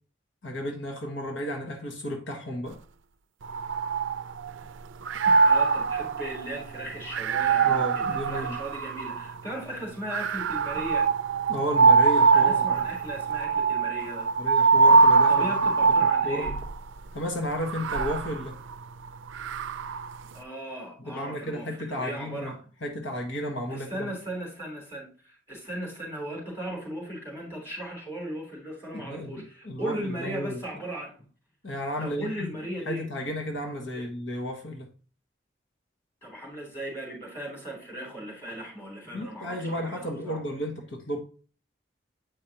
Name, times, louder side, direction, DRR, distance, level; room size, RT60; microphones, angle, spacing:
voice 1, 0.4-2.8 7.6-8.6 11.5-12.9 14.4-15.5 16.2-16.6 17.1-18.6 21.1-22.5 22.8-23.9 28.9-30.6 31.6-32.5 32.8-34.9 39.1-41.2, equal, 80° left, 1.5 m, -33 dB
sound 1, 3.4-4.6 5.0-9.4 10.1-16.8 17.5-20.1, right 4 dB, 90° right, 0.4 m, -23 dB
voice 2, 5.4-11.1 12.3-14.3 15.3-16.5 20.3-22.6 23.7-31.3 32.0-33.0 33.9-34.0 36.2-40.4, right 1 dB, 15° left, 3.5 m, -37 dB
8.6 x 5.0 x 3.0 m
head